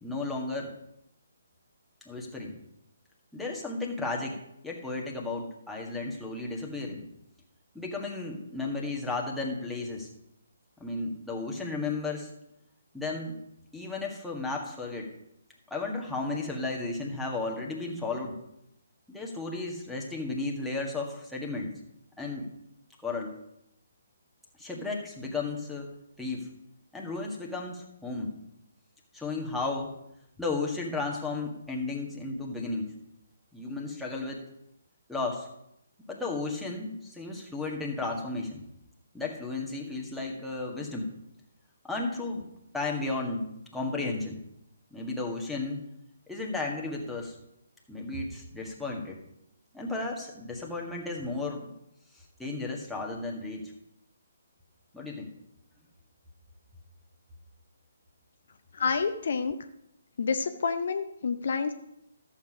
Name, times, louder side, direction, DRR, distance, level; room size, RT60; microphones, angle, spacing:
voice 1, 0.0-0.7 2.0-2.5 3.3-4.4 4.6-7.0 7.7-10.1 10.8-12.3 12.9-13.4 13.7-15.1 15.7-18.3 19.1-21.7 22.2-22.5 23.0-23.3 24.6-25.9 26.2-26.5 26.9-28.3 29.1-29.9 30.4-32.9 33.5-34.4 35.1-35.5 36.1-38.6 39.1-41.1 41.8-42.5 42.7-44.4 44.9-45.8 46.3-47.3 47.9-49.2 49.7-51.7 52.4-53.7 54.9-55.3, left 3 dB, ahead, -3 dB, 1.7 m, -34 dB
voice 2, 58.7-59.6 60.2-61.7, left 5 dB, 50° left, 8 dB, 0.7 m, -28 dB
14.0 x 7.5 x 4.9 m, 0.81 s
figure-of-eight pair, 135°, 0 cm